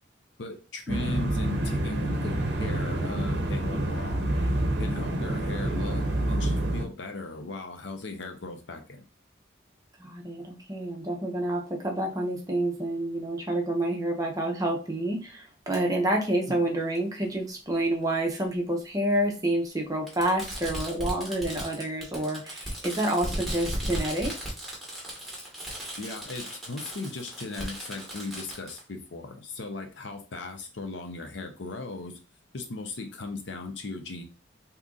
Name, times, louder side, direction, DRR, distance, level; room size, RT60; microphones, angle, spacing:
voice 1, 0.4-4.3 4.8-9.0 16.5-16.6 26.0-32.2 32.5-34.2, left 3 dB, 75° left, 5 dB, 0.6 m, -38 dB
sound 1, 0.9-6.8, right 1 dB, 65° right, 0.6 m, -28 dB
voice 2, 10.0-24.4, right 1 dB, 20° right, 0 dB, 0.6 m, -28 dB
Fireworks, 15.7-15.8 17.0-17.1 18.3-18.4 20.1-28.8, right 1 dB, ahead, 1.1 m, -36 dB
2.8 x 2.5 x 3.6 m, 0.33 s
head